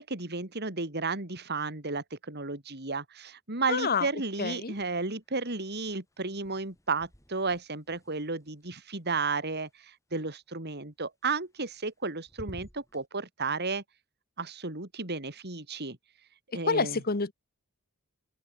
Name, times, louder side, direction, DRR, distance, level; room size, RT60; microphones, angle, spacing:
voice 1, 0.0-9.7 10.1-13.8 14.4-16.0 16.5-17.0, right 4 dB, 45° right, 3.1 m, -33 dB
voice 2, 3.7-4.1 4.4-4.7 16.7-17.3, left 4 dB, 40° left, 1.1 m, -28 dB
sound 1, 4.7-5.4 5.6-9.7 11.4-12.0 12.3-13.1, equal, 15° left, 7.2 m, -53 dB
open air
head